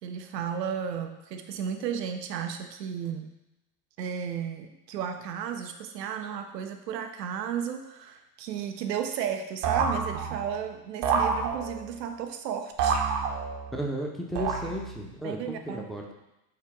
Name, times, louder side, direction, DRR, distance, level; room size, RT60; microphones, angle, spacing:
voice 1, 0.0-3.3 4.0-13.0 15.2-15.9, right 8 dB, 80° right, 6 dB, 0.8 m, -34 dB
sound 1, 9.6-10.6 11.0-12.0 12.8-13.8 14.4-15.1, right 5 dB, 55° right, 1.1 m, -28 dB
voice 2, 13.7-16.1, right 1 dB, ahead, 0 dB, 1.0 m, -34 dB
5.7 x 3.3 x 5.0 m, 0.93 s
hypercardioid pair, 75°, 49 cm